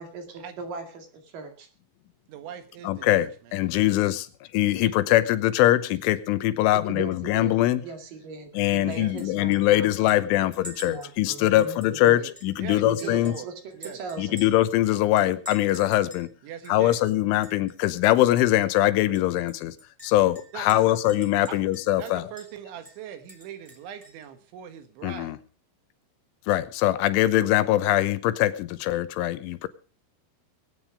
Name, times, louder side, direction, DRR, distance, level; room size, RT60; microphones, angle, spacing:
voice 1, 0.0-1.7 6.9-7.6 7.8-9.9 10.3-10.5 10.8-12.3 12.9-14.4, right 4 dB, 55° right, 3.4 m, -39 dB
voice 2, 2.3-3.7 8.9-9.2 12.6-14.0 16.4-17.0 20.5-21.0 21.5-21.6 22.0-25.4, right 9 dB, 75° right, 3.9 m, -41 dB
voice 3, 2.8-4.3 4.5-7.9 8.5-13.4 14.2-16.3 16.7-19.8 20.0-22.3 25.0-25.4 26.5-29.7, left 14 dB, 90° left, 3.4 m, -22 dB
Chink clink, 8.9-9.3 9.5-9.6 10.1-12.6 13.0-14.7 15.2-16.3 16.6-16.7 17.1-17.7 18.0-18.2 18.5-18.6 19.1-22.0 22.4-22.5 22.8-24.2, right 1 dB, 5° right, 1.6 m, -47 dB
21.5 x 9.3 x 4.9 m
omnidirectional pair, 5.5 m